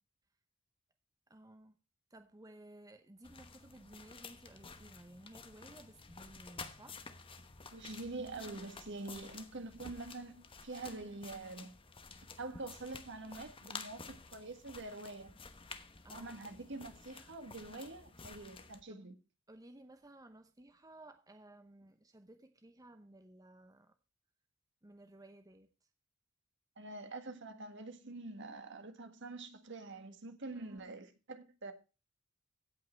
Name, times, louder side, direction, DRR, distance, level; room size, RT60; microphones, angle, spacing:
voice 1, 1.3-1.8 2.1-7.0 16.0-16.3 18.9-19.1 19.5-23.9 24.8-25.7 30.5-30.8, right 1 dB, 15° right, 0.8 m, -57 dB
sound 1, 3.2-18.8, left 4 dB, 25° left, 1.0 m, -52 dB
voice 2, 7.7-11.7 12.4-15.3 16.1-19.1 26.8-31.7, right 2 dB, 60° right, 1.7 m, -46 dB
16.5 x 5.7 x 4.5 m
head